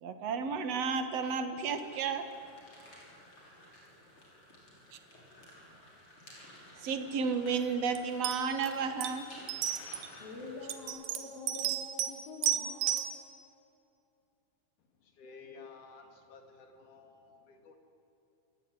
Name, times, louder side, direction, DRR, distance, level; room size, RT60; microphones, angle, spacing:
voice 1, 0.0-2.2 6.8-9.2, right 5 dB, 55° right, 8 dB, 2.4 m, -32 dB
sound 1, 1.7-10.8, left 1 dB, 35° left, 7.0 m, -54 dB
sound 2, 8.0-8.1 8.2-8.7 9.0-9.1 9.5-10.1 10.7-12.1 12.4-13.1, right 11 dB, 85° right, 3.2 m, -32 dB
voice 2, 10.0-13.1, left 3 dB, 85° left, -4 dB, 5.0 m, -46 dB
voice 3, 15.0-17.8, left 4 dB, 65° left, 4 dB, 3.9 m, -53 dB
29.0 x 17.0 x 9.9 m, 2.8 s
omnidirectional pair, 4.0 m